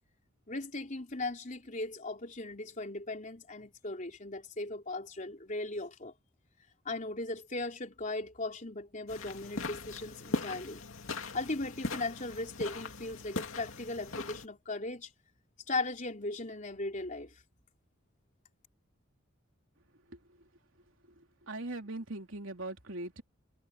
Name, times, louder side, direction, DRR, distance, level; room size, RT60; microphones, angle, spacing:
voice 1, 0.5-6.1 6.9-10.8 11.3-15.1 15.7-17.3, left 2 dB, 40° left, 3.8 m, -38 dB
sound 1, 9.1-14.5, left 3 dB, 85° left, 2.4 m, -39 dB
voice 2, 21.2-23.2, right 2 dB, 75° right, 3.4 m, -41 dB
head